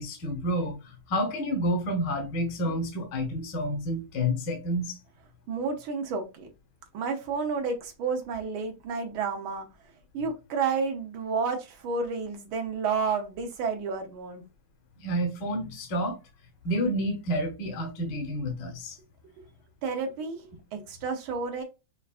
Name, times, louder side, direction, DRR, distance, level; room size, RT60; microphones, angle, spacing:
voice 1, 0.0-5.0 15.0-16.2 16.6-19.0, equal, 65° left, 1.5 m, -29 dB
voice 2, 5.5-6.5 6.9-9.7 10.1-14.4 19.8-20.4 20.7-21.6, right 5 dB, 85° right, 1.6 m, -30 dB
5.6 x 2.3 x 2.4 m
omnidirectional pair, 2.2 m